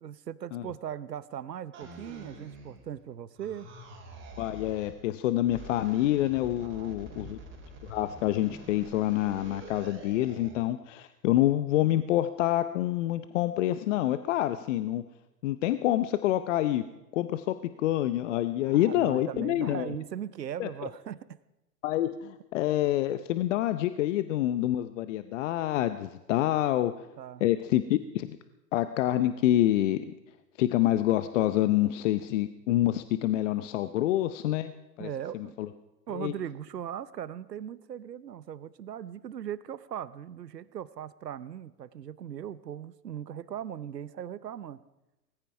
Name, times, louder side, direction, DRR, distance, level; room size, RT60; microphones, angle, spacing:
voice 1, 0.0-3.7 6.6-7.3 18.7-21.4 26.8-26.9 27.2-27.4 35.0-35.8 36.1-44.8, right 9 dB, 85° right, 18 dB, 0.9 m, -39 dB
sound 1, 1.7-3.0 3.4-5.0 5.4-10.6, right 2 dB, 25° right, 3.9 m, -47 dB
voice 2, 4.4-7.4 7.9-15.0 15.4-16.8 17.1-19.9 20.6-20.7 21.8-27.1 27.4-28.4 28.7-30.1 30.6-34.7 35.0-35.7 36.1-36.4, left 14 dB, 50° left, 12 dB, 0.8 m, -27 dB
18.5 x 15.0 x 4.8 m, 1.0 s
hypercardioid pair, 105°, 48 cm